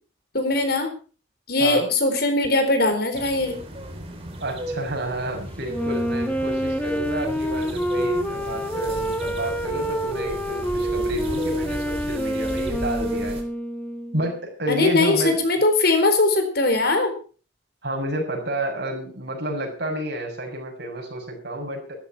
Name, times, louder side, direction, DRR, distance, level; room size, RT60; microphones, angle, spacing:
voice 1, 0.3-0.9 1.5-3.6 14.7-17.1, left 2 dB, 55° left, 7 dB, 4.1 m, -20 dB
sound 1, 3.1-13.4, right 1 dB, 30° right, 3.7 m, -35 dB
voice 2, 4.4-13.4 14.1-15.4 17.8-22.0, right 1 dB, 60° right, 2 dB, 6.5 m, -30 dB
Wind instrument woodwind instrument, 5.7-14.2, equal, 10° left, 1.4 m, -27 dB
14.5 x 13.0 x 5.5 m, 0.38 s
head